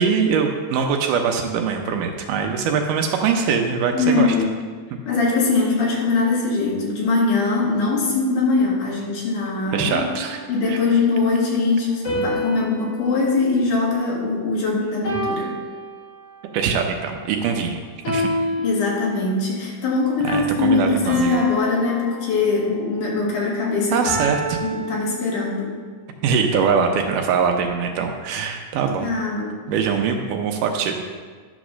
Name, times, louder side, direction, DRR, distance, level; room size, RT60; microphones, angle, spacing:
voice 1, 0.0-4.3 4.9-5.0 9.7-10.4 10.7-10.8 16.5-18.3 20.2-21.4 23.9-24.6 26.2-29.1 29.7-31.0, right 6 dB, 75° right, 4 dB, 2.2 m, -22 dB
voice 2, 3.9-4.5 5.1-10.0 10.5-15.5 18.6-24.1 24.6-25.7 29.0-29.5, left 3 dB, 65° left, -3 dB, 3.1 m, -21 dB
sound 1, 9.6-10.9 12.0-14.5 15.0-16.5 18.0-19.5 21.0-22.9 24.0-25.7, equal, 50° left, 3.9 m, -30 dB
11.0 x 4.0 x 6.2 m, 1.5 s
omnidirectional pair, 3.9 m